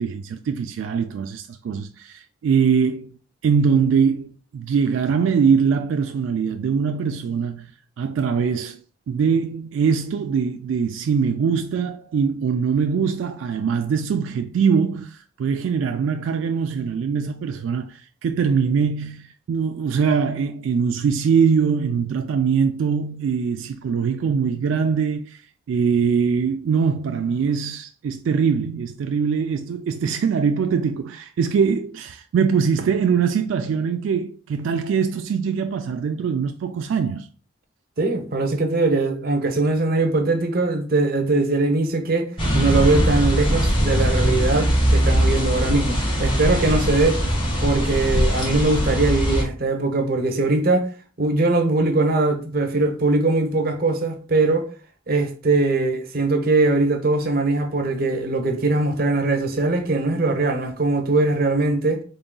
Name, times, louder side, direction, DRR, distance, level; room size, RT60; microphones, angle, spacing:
voice 1, 0.0-3.1 3.4-7.7 8.0-8.8 9.1-25.4 25.7-37.3, right 6 dB, 85° right, 0.3 m, -22 dB
voice 2, 38.0-47.2 47.6-50.9 51.2-54.7 55.1-62.0, right 2 dB, 50° right, 0.8 m, -21 dB
sound 1, 42.4-49.4, equal, 25° left, 1.2 m, -21 dB
3.8 x 3.7 x 2.2 m
head